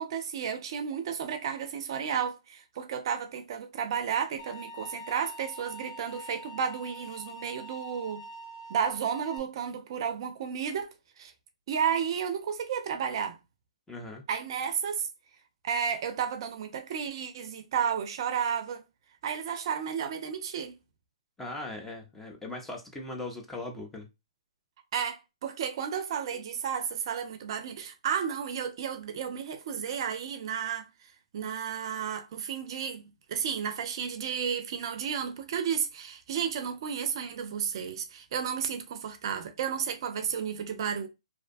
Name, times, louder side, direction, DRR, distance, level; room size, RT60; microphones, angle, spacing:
voice 1, 0.0-8.2 8.7-11.3 11.7-13.4 14.3-15.1 15.6-18.8 19.2-20.8 24.9-30.9 31.3-33.0 33.3-41.1, right 7 dB, 50° right, 0.5 m, -32 dB
sound 1, 4.4-9.4, right 1 dB, 60° left, 0.6 m, -45 dB
voice 2, 13.9-14.3 21.4-24.1, left 2 dB, 5° left, 0.6 m, -39 dB
2.6 x 2.1 x 2.5 m
hypercardioid pair, 135°, 3 cm